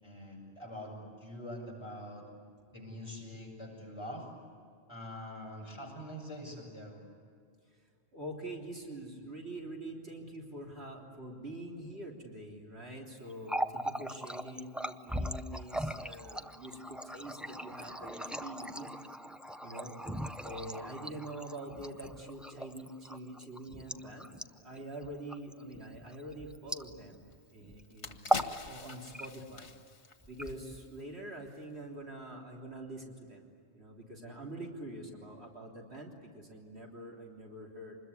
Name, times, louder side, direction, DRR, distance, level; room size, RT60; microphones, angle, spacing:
voice 1, 0.0-2.3 2.7-4.3 4.9-7.0, equal, 25° left, -2 dB, 7.5 m, -44 dB
voice 2, 8.1-18.9 19.6-19.9 20.4-24.3 24.6-27.2 27.5-29.7 30.3-38.0, right 1 dB, 70° right, -1 dB, 3.8 m, -45 dB
Water tap faucet, 13.3-27.3 27.6-27.8 28.2-28.6 28.9-29.6 30.2-31.0, right 1 dB, ahead, 0.6 m, -38 dB
sound 1, 27.3-27.4 27.8-31.1 31.4-31.6, left 4 dB, 90° left, 1.8 m, -45 dB
26.0 x 21.0 x 9.8 m, 2.3 s
omnidirectional pair, 1.1 m